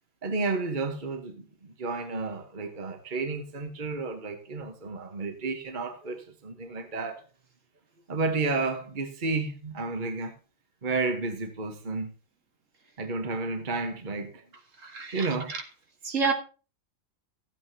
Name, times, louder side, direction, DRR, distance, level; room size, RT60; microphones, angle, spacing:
voice 1, 0.2-7.2 8.1-10.3 10.8-12.1 13.0-14.4 15.1-15.5, right 3 dB, 35° right, 1.4 m, -31 dB
voice 2, 14.8-15.6 16.0-16.3, right 4 dB, 60° right, 2.0 m, -29 dB
14.5 x 9.1 x 2.9 m
omnidirectional pair, 1.5 m